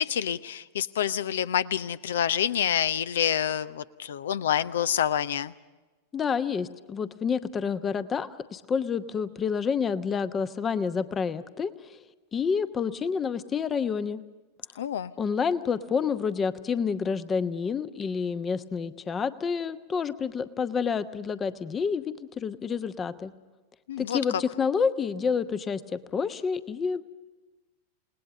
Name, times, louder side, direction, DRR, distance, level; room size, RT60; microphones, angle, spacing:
voice 1, 0.0-5.5 14.8-15.1 23.9-24.2, left 9 dB, 60° left, 16 dB, 0.7 m, -27 dB
voice 2, 6.1-12.0 12.3-14.2 15.2-23.3 24.0-27.0, left 6 dB, 20° left, 13 dB, 0.9 m, -29 dB
29.0 x 19.0 x 6.6 m, 1.2 s
figure-of-eight pair, 90°, 0 cm